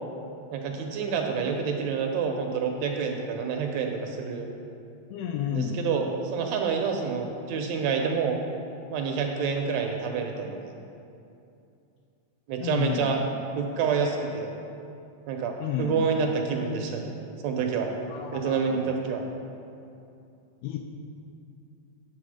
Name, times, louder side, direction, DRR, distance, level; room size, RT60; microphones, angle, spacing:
voice 1, 0.5-4.5 5.5-8.4 8.9-10.6 12.5-13.2 13.6-14.5 15.3-17.1 17.4-17.9 18.3-19.3, right 5 dB, 75° right, 3 dB, 1.7 m, -28 dB
voice 2, 5.1-5.8 12.6-13.1 15.6-16.1 18.1-19.0 20.6-20.8, left 10 dB, 80° left, 2 dB, 1.6 m, -31 dB
9.0 x 3.9 x 6.3 m, 2.6 s
omnidirectional pair, 3.4 m